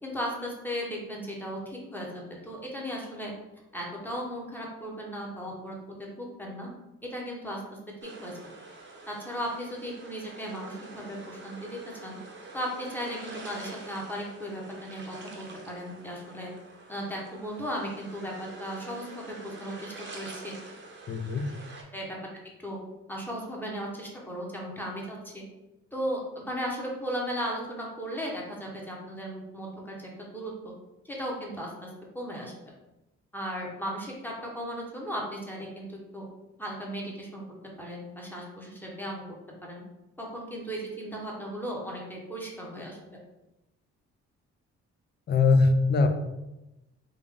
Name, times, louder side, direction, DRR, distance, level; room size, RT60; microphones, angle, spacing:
voice 1, 0.0-3.3 3.7-6.7 7.1-7.6 8.0-8.3 9.1-12.2 12.5-16.5 16.9-20.5 21.9-22.1 22.6-22.8 23.1-25.4 25.9-30.7 31.0-31.9 32.1-32.5 33.3-36.2 36.6-37.4 37.8-39.2 39.6-39.8 40.2-43.0, equal, 5° left, -2 dB, 0.9 m, -36 dB
sound 1, 8.0-21.8, right 3 dB, 40° right, 0.9 m, -46 dB
voice 2, 21.1-21.5 45.3-46.1, left 3 dB, 35° left, 7 dB, 0.5 m, -21 dB
3.5 x 2.5 x 3.5 m, 0.98 s
cardioid pair, 90°, 30 cm